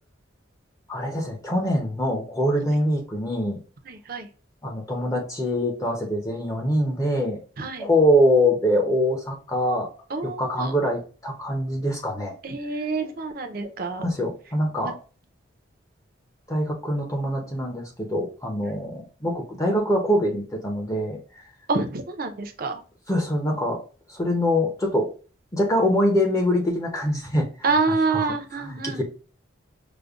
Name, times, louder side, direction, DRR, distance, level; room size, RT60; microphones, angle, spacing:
voice 1, 0.9-3.6 4.6-7.4 7.8-9.9 10.2-12.3 14.0-15.0 16.5-21.2 23.1-23.8 24.1-25.1 25.5-27.8 28.1-29.0, equal, 15° left, 1 dB, 0.6 m, -24 dB
voice 2, 3.9-4.3 7.6-7.9 10.1-10.7 12.4-14.1 21.7-22.8 27.6-29.0, right 4 dB, 45° right, 6 dB, 0.5 m, -27 dB
5.0 x 2.1 x 2.3 m, 0.38 s
head